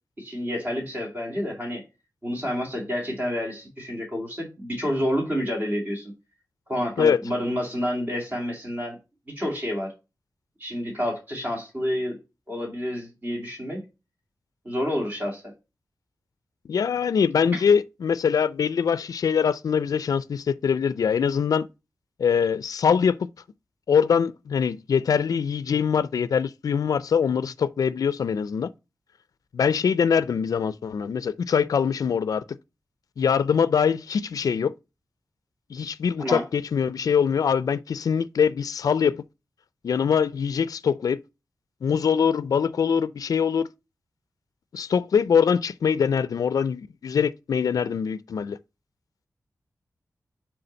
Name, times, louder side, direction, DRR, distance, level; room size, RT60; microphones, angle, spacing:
voice 1, 0.2-1.8 2.2-6.1 6.7-9.0 9.3-9.9 10.6-12.2 12.5-13.8 14.6-15.5 17.5-17.6 36.2-36.4, equal, 30° right, 2.3 m, -29 dB
voice 2, 16.7-21.7 22.2-23.3 23.9-28.7 29.5-32.4 33.2-34.7 35.7-39.2 39.8-41.2 41.8-43.7 44.7-48.6, left 7 dB, 75° left, 0.3 m, -23 dB
6.8 x 3.7 x 3.9 m
wide cardioid pair, 125°, 6 cm